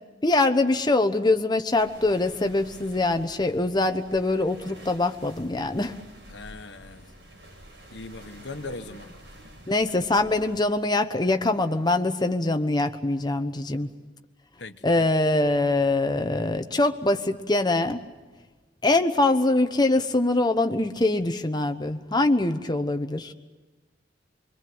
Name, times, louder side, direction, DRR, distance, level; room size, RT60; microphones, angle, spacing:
voice 1, 0.2-5.9 9.7-13.9 14.8-18.0 18.8-23.3, left 2 dB, 25° left, 7 dB, 1.1 m, -23 dB
sound 1, 1.8-10.6, equal, 80° right, 7.2 m, -48 dB
voice 2, 6.3-7.1 7.9-9.1 14.6-15.1, left 3 dB, 70° left, 8 dB, 1.3 m, -39 dB
25.5 x 23.5 x 8.0 m, 1.3 s
head